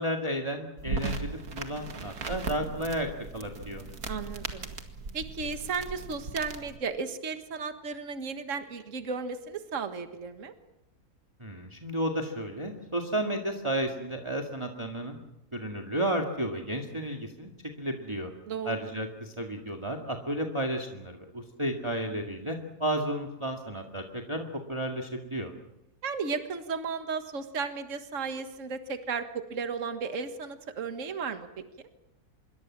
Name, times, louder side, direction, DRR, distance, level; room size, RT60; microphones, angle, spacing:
voice 1, 0.0-3.1 3.3-3.8 11.4-15.2 15.5-17.5 17.8-18.3 18.6-24.4 24.7-25.5, right 1 dB, 20° right, 2 dB, 2.0 m, -32 dB
sound 1, 0.8-6.8, right 3 dB, 70° right, 2.4 m, -37 dB
voice 2, 4.1-4.7 5.1-10.5 18.5-18.9 26.0-31.5, right 5 dB, 55° right, 8 dB, 1.9 m, -34 dB
26.5 x 22.5 x 7.5 m, 0.91 s
omnidirectional pair, 1.6 m